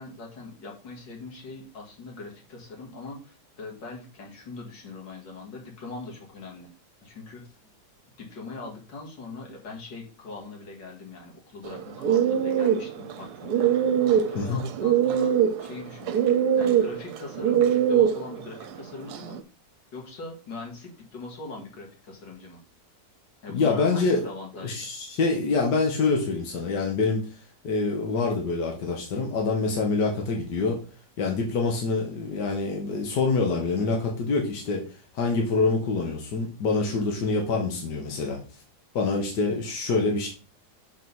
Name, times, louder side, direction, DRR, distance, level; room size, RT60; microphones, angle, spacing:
voice 1, 0.0-6.7 7.0-7.4 8.2-15.3 15.6-19.4 19.9-22.6 23.4-24.8, left 3 dB, 90° left, 0 dB, 2.6 m, -41 dB
sound 1, 11.6-19.4, right 9 dB, 70° right, 1.2 m, -23 dB
voice 2, 23.5-24.2 24.6-27.4 27.6-30.8 31.2-34.8 35.1-38.4 38.9-40.3, left 3 dB, 75° left, 1 dB, 1.9 m, -26 dB
6.2 x 4.9 x 5.4 m, 0.36 s
omnidirectional pair, 1.9 m